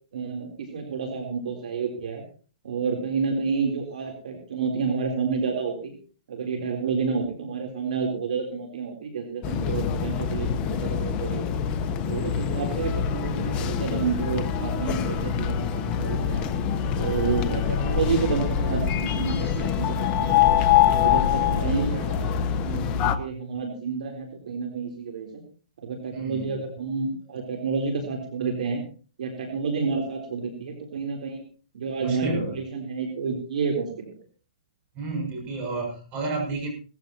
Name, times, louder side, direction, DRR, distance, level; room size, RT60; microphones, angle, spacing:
voice 1, 0.1-2.2 2.6-5.9 6.3-11.5 12.1-16.5 17.0-20.4 20.8-25.4 25.8-28.8 29.2-31.5 31.7-34.1, right 5 dB, 70° right, 3 dB, 3.8 m, -29 dB
sound 1, 9.4-23.2, left 9 dB, 30° left, 1.2 m, -25 dB
voice 2, 26.1-26.5 32.0-32.5 34.9-36.7, right 3 dB, 35° right, 0 dB, 7.2 m, -31 dB
19.0 x 14.5 x 3.0 m, 0.39 s
hypercardioid pair, 135°, 4 cm